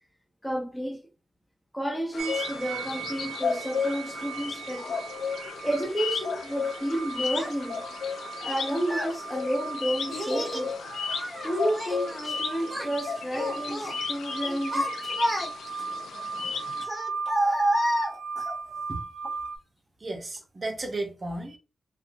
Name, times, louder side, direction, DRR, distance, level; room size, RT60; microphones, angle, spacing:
voice 1, 0.4-1.0 1.7-5.0 5.6-7.9 8.4-10.8 11.4-14.9, right 1 dB, 10° left, 0.6 m, -31 dB
sound 1, 2.1-16.8, left 6 dB, 85° left, 0.4 m, -34 dB
sound 2, 2.2-19.6, right 5 dB, 85° right, 0.4 m, -38 dB
Child speech kid speaking, 7.3-7.5 8.4-9.2 10.1-10.7 11.1-12.4 12.6-12.9 13.3-13.9 14.4-15.8 16.8-18.5, right 1 dB, 15° right, 1.0 m, -29 dB
voice 2, 20.0-21.6, right 2 dB, 35° right, 0.6 m, -34 dB
2.7 x 2.2 x 2.5 m
cardioid pair, 95°, 0 cm